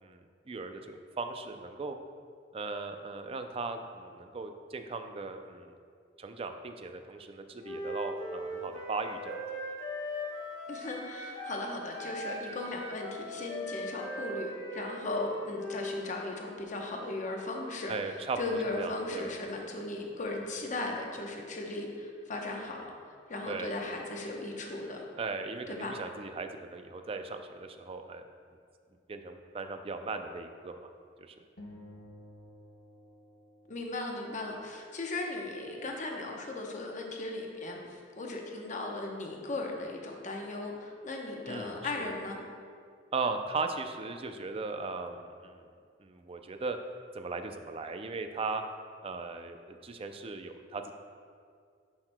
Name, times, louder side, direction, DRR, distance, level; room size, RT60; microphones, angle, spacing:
voice 1, 0.0-2.0 2.5-5.7 6.2-9.4 17.9-18.4 18.8-19.3 23.5-23.7 25.2-28.2 29.1-30.9 31.2-31.4 41.5-42.1 43.1-45.6 46.0-46.8 47.1-48.6 49.0-50.9, right 3 dB, 30° right, 7 dB, 0.4 m, -38 dB
Wind instrument woodwind instrument, 7.6-11.7 11.9-16.1, equal, 90° left, 1.2 m, -39 dB
voice 2, 10.7-22.9 23.3-25.0 25.7-25.9 33.7-42.4, left 2 dB, 40° left, 1 dB, 0.8 m, -37 dB
sound 1, 31.6-34.2, left 1 dB, 60° left, 1.1 m, -52 dB
10.5 x 5.8 x 2.2 m, 2.2 s
head